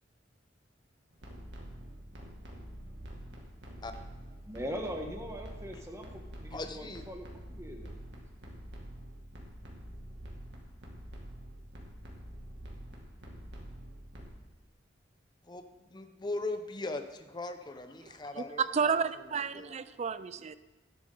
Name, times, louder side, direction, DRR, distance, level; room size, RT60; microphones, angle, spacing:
sound 1, 1.1-14.3, equal, 65° right, 2.1 m, -46 dB
voice 1, 4.5-8.0, equal, 15° right, 2 dB, 1.2 m, -41 dB
voice 2, 6.5-7.0 15.5-15.6 15.9-18.9 19.3-19.7, left 2 dB, 25° left, 7 dB, 0.7 m, -39 dB
voice 3, 18.1-20.6, right 6 dB, 35° right, 15 dB, 0.4 m, -32 dB
12.5 x 10.5 x 3.8 m, 1.2 s
head